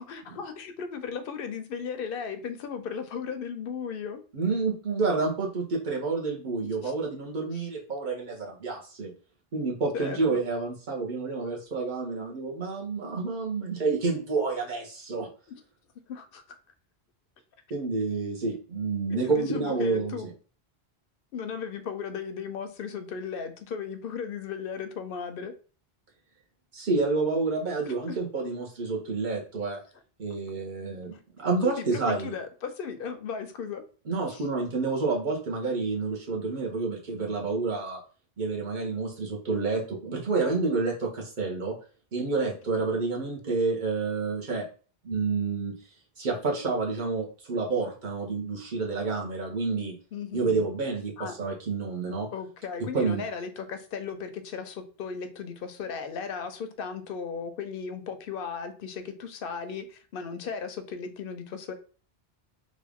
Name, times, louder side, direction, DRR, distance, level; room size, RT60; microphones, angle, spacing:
voice 1, 0.0-4.2 6.8-6.9 7.5-7.7 9.9-10.4 15.5-15.6 16.1-16.6 19.1-20.3 21.3-25.5 27.8-28.2 31.6-33.8 34.3-34.4 50.1-50.7 51.2-51.4 52.3-61.7, left 6 dB, 65° left, 9 dB, 0.7 m, -36 dB
voice 2, 4.3-9.1 9.5-15.3 17.7-20.2 26.7-29.8 30.2-32.4 34.1-38.0 38.4-41.7 42.1-44.6 45.0-45.7 46.2-49.9 50.3-52.3 52.9-53.2, right 4 dB, 50° right, -2 dB, 1.1 m, -29 dB
3.2 x 2.5 x 3.4 m, 0.39 s
omnidirectional pair, 1.0 m